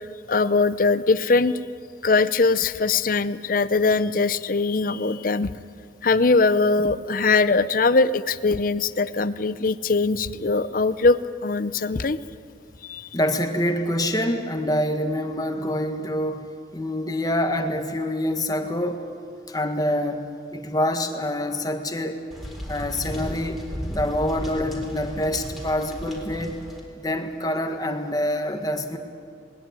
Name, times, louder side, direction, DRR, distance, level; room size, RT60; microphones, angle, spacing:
voice 1, 0.3-1.6 2.0-5.5 6.0-12.2 12.8-13.1, left 3 dB, 50° left, 15 dB, 0.7 m, -21 dB
voice 2, 13.1-19.0 19.5-22.2 22.7-23.6 23.9-26.5 26.9-29.0, left 1 dB, 20° left, 6 dB, 1.6 m, -26 dB
sound 1, 22.3-26.8, equal, ahead, 3.9 m, -34 dB
21.0 x 19.5 x 9.2 m, 2.4 s
head